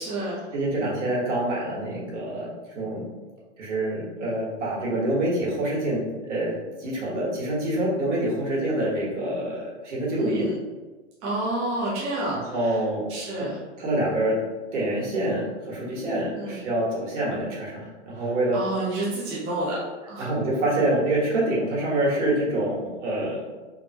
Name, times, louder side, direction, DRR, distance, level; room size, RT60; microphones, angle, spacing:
voice 1, 0.0-0.5 10.2-10.6 11.2-12.8 13.1-13.6 16.3-16.6 18.2-19.8 20.1-20.3, right 2 dB, 15° right, -7 dB, 0.5 m, -30 dB
voice 2, 0.5-2.5 2.7-3.1 3.6-6.0 6.3-6.5 6.8-10.5 12.5-13.1 13.4-13.5 13.8-14.4 14.7-18.6 20.2-23.4, right 1 dB, 75° right, -5 dB, 1.4 m, -26 dB
3.5 x 2.1 x 2.8 m, 1.2 s
hypercardioid pair, 155°, 36 cm